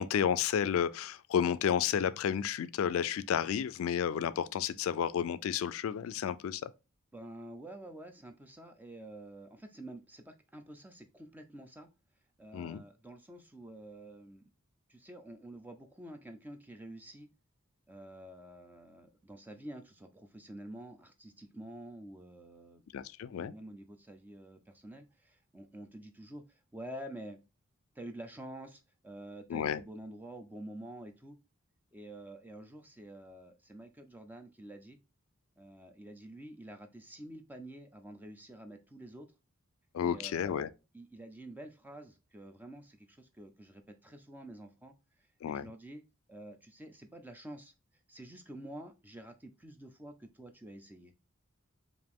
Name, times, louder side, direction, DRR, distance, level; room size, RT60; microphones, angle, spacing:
voice 1, 0.0-6.7 12.5-12.8 22.9-23.5 29.5-29.8 39.9-40.7 45.4-45.7, left 8 dB, 75° left, 0.3 m, -31 dB
voice 2, 7.1-11.9 12.4-14.5 14.9-17.3 17.9-22.8 23.3-27.4 27.9-31.4 31.9-35.0 35.6-39.3 40.0-40.7 40.9-44.9 45.4-46.0 46.3-47.7 48.1-51.1, right 1 dB, 10° right, 0.4 m, -48 dB
5.0 x 2.5 x 3.5 m
head